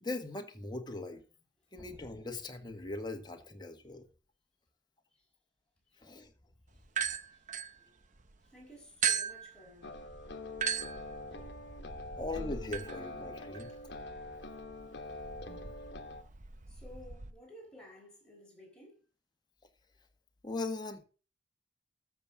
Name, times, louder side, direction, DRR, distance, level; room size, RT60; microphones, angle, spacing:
voice 1, 0.0-1.2 1.7-4.1 6.0-6.3 7.8-7.9 12.1-13.7 15.5-15.7 20.4-21.0, left 2 dB, 25° left, 1.6 m, -40 dB
voice 2, 6.7-7.8 8.4-10.0 13.7-13.8 16.7-19.0, left 1 dB, 5° left, 6.4 m, -55 dB
sound 1, 6.9-8.4 9.0-17.3, right 7 dB, 45° right, 0.8 m, -39 dB
sound 2, 9.8-16.2, left 2 dB, 65° left, 1.4 m, -45 dB
13.5 x 7.3 x 3.7 m
head